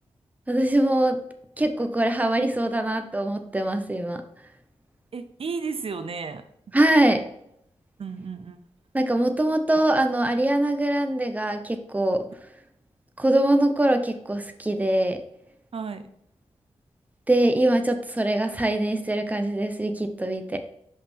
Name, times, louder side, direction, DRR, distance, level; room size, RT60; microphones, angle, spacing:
voice 1, 0.5-1.2 1.6-4.2 6.7-7.2 8.9-12.2 13.2-15.2 17.3-20.6, right 1 dB, 15° right, 7 dB, 0.7 m, -23 dB
voice 2, 5.1-6.4 8.0-8.6 15.7-16.1, right 5 dB, 60° right, 10 dB, 0.6 m, -33 dB
5.5 x 5.4 x 3.5 m, 0.74 s
wide cardioid pair, 95°, 11 cm